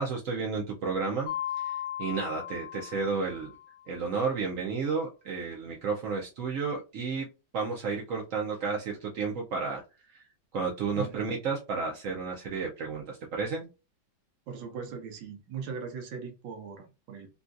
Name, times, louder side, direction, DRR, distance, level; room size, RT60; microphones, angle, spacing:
voice 1, 0.0-3.5 3.9-7.3 7.5-9.8 10.1-10.2 10.5-13.7, right 4 dB, 65° right, 0.8 m, -32 dB
Mallet percussion, 1.3-3.9, left 11 dB, 75° left, 1.2 m, -37 dB
voice 2, 10.9-11.4 14.5-17.3, right 6 dB, 85° right, 1.5 m, -39 dB
3.8 x 2.3 x 2.5 m
omnidirectional pair, 2.0 m